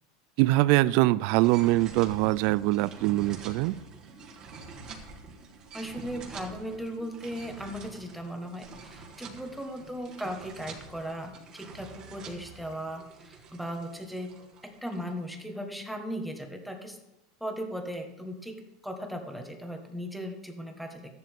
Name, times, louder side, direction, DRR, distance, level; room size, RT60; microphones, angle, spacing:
voice 1, 0.4-3.8, right 18 dB, 50° right, 0.4 m, -23 dB
sound 1, 1.4-15.4, right 4 dB, 30° right, 1.7 m, -46 dB
voice 2, 5.7-14.3 14.6-17.0 17.4-18.6 18.8-21.1, equal, ahead, 1.3 m, -37 dB
13.5 x 10.5 x 3.6 m
supercardioid pair, 150°, 2 cm